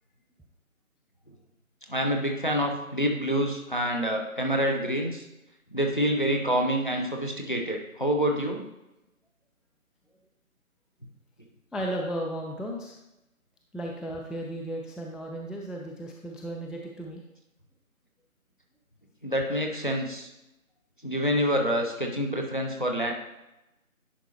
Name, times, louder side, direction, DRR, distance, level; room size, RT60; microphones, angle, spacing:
voice 1, 1.9-5.2 5.7-8.6 19.2-20.3 21.0-23.1, equal, 35° left, 2 dB, 0.8 m, -27 dB
voice 2, 11.7-13.0 13.7-17.2, right 1 dB, ahead, 0 dB, 0.4 m, -35 dB
10.0 x 5.0 x 2.9 m, 0.93 s
figure-of-eight pair, 170°, 43 cm